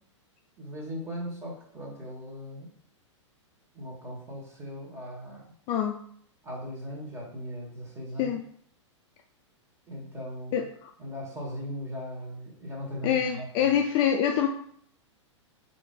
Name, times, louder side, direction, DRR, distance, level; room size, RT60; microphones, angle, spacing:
voice 1, 0.6-2.7 3.7-5.5 6.4-8.3 9.9-10.6 11.0-13.7, equal, 15° right, -2 dB, 1.5 m, -38 dB
voice 2, 10.5-10.9 13.0-14.5, left 9 dB, 30° left, 3 dB, 0.3 m, -25 dB
4.4 x 2.7 x 3.7 m, 0.62 s
hypercardioid pair, 110°, 16 cm